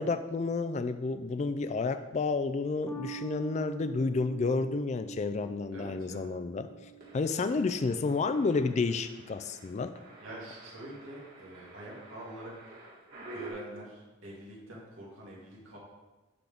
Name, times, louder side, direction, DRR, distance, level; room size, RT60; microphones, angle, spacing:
voice 1, 0.0-6.7 7.1-9.9, left 4 dB, 35° left, 10 dB, 0.3 m, -30 dB
sound 1, 2.9-9.6, right 6 dB, 5° left, 0.8 m, -47 dB
voice 2, 5.7-6.3 7.3-7.6 10.2-12.8 13.3-15.8, right 1 dB, 65° right, -5 dB, 2.2 m, -46 dB
sound 2, 7.0-13.5, right 2 dB, 45° right, 2.4 m, -50 dB
11.5 x 3.9 x 3.5 m, 1.1 s
head